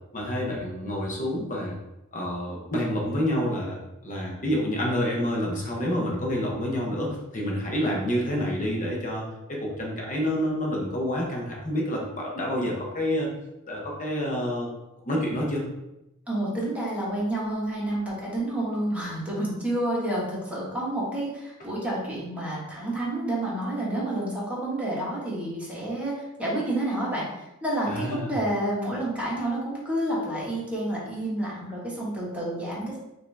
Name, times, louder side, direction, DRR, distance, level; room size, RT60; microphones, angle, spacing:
voice 1, 0.1-1.8 2.1-9.2 9.5-13.3 13.7-14.7 15.0-15.6 27.9-28.3, equal, 35° left, -2 dB, 0.9 m, -28 dB
voice 2, 16.3-26.1 26.4-27.2 27.6-33.0, right 1 dB, 5° right, -6 dB, 1.4 m, -29 dB
5.6 x 2.7 x 3.3 m, 0.91 s
head